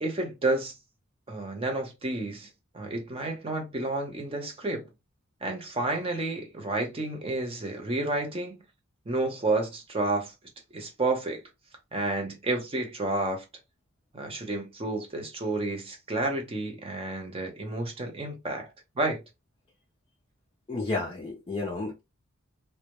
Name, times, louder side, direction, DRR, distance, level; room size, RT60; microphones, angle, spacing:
voice 1, 0.0-0.7 1.3-2.5 2.7-4.9 5.4-8.5 9.1-10.3 10.7-11.4 11.9-13.4 14.1-18.7 19.0-19.2, right 2 dB, 25° right, 0.6 m, -30 dB
voice 2, 20.7-22.0, left 3 dB, 25° left, 0.4 m, -31 dB
2.2 x 2.0 x 2.8 m
head